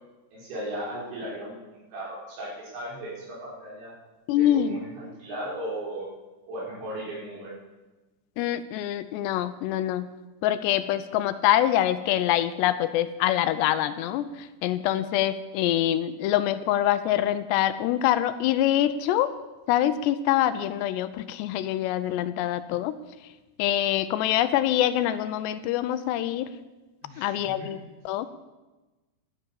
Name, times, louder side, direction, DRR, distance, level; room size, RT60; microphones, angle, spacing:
voice 1, 0.3-3.9 4.3-6.1 6.5-7.5 27.0-27.9, right 1 dB, 80° right, -4 dB, 7.4 m, -37 dB
voice 2, 4.3-4.8 8.4-10.1 10.4-19.3 19.7-23.0 23.6-26.5 27.2-27.8 28.1-28.3, left 12 dB, 80° left, 13 dB, 2.7 m, -25 dB
13.5 x 11.0 x 7.1 m, 1.1 s
omnidirectional pair, 5.1 m